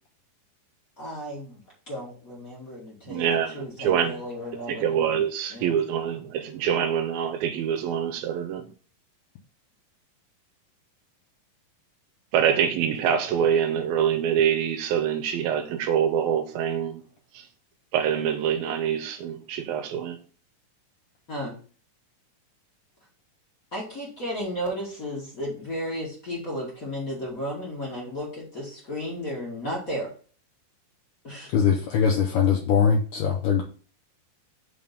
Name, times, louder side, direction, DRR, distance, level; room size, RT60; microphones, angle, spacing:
voice 1, 1.0-1.6 1.9-5.2 5.5-5.8 21.3-21.5 23.7-30.1 31.2-31.5, equal, 35° left, 1.4 m, -34 dB
voice 2, 3.1-4.2 4.7-8.7 12.3-17.0 17.4-17.5 17.9-20.2, right 8 dB, 85° right, 2.4 m, -25 dB
voice 3, 31.5-33.6, left 7 dB, 75° left, 2.0 m, -21 dB
5.8 x 3.5 x 5.3 m
omnidirectional pair, 4.3 m